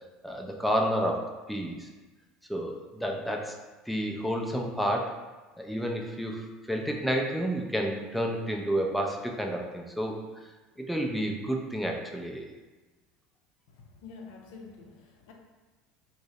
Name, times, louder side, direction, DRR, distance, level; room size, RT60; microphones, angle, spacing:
voice 1, 0.2-1.9 2.5-3.5 3.9-5.1 5.6-10.2 10.9-12.5, equal, ahead, 1 dB, 0.5 m, -30 dB
voice 2, 13.7-15.3, left 4 dB, 65° left, 1 dB, 0.5 m, -48 dB
2.6 x 2.1 x 4.0 m, 1.2 s
figure-of-eight pair, 70°, 0 cm